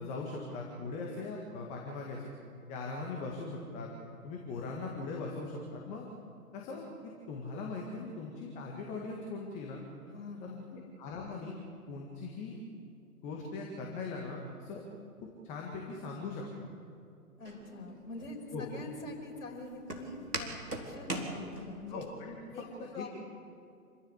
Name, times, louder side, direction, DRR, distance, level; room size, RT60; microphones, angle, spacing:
voice 1, 0.0-2.3 2.7-3.9 4.2-6.1 6.5-6.9 7.3-9.8 10.4-11.5 11.9-12.6 13.2-14.8 15.4-16.7 18.5-18.6 21.9-23.1, left 3 dB, 15° left, -1 dB, 1.9 m, -40 dB
voice 2, 10.1-10.9 17.4-22.1 22.5-22.7 22.9-23.1, left 2 dB, 55° left, 1 dB, 5.7 m, -44 dB
Walk footsteps, 17.4-22.0, right 1 dB, 85° right, 4.0 m, -41 dB
27.5 x 15.0 x 8.2 m, 2.4 s
figure-of-eight pair, 135°, 47 cm